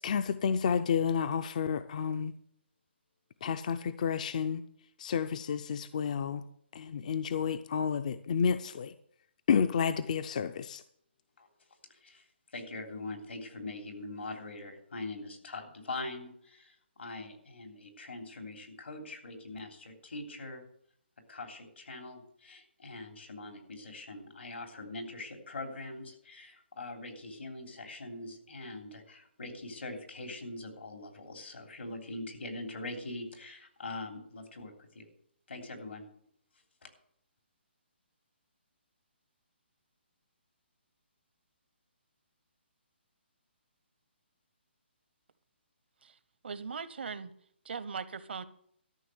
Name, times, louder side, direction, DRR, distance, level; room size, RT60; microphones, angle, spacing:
voice 1, 0.0-2.3 3.4-4.6 5.0-6.4 6.7-8.9 9.5-10.8, left 7 dB, 40° left, 11 dB, 0.5 m, -30 dB
voice 2, 11.9-12.3 12.5-20.7 21.3-35.1 35.5-36.0 36.8-36.9, left 2 dB, 85° left, 4 dB, 3.4 m, -43 dB
voice 3, 46.4-47.3 47.6-48.5, right 5 dB, 65° right, 15 dB, 0.9 m, -39 dB
13.0 x 6.2 x 7.9 m, 0.67 s
hypercardioid pair, 165°, 6 cm